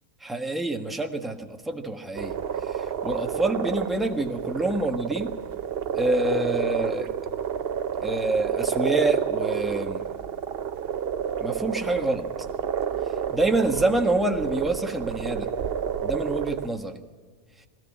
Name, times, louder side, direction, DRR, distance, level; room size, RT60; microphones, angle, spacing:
voice 1, 0.2-2.4 2.6-5.3 5.9-7.3 8.0-10.1 11.4-12.3 13.3-15.5 16.0-17.0, right 2 dB, ahead, 4 dB, 1.3 m, -27 dB
sound 1, 2.2-16.7, right 8 dB, 55° right, 0.9 m, -29 dB
21.0 x 17.0 x 8.7 m, 1.6 s
omnidirectional pair, 1.4 m